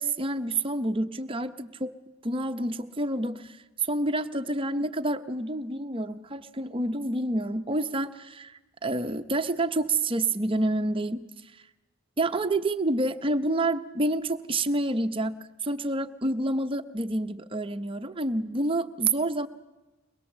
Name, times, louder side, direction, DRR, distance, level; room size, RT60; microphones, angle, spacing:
voice 1, 0.0-1.9 2.2-3.6 3.9-8.5 8.8-11.2 12.2-15.3 15.6-19.5, right 2 dB, 25° right, 9 dB, 0.7 m, -28 dB
22.5 x 21.0 x 7.3 m, 1.1 s
head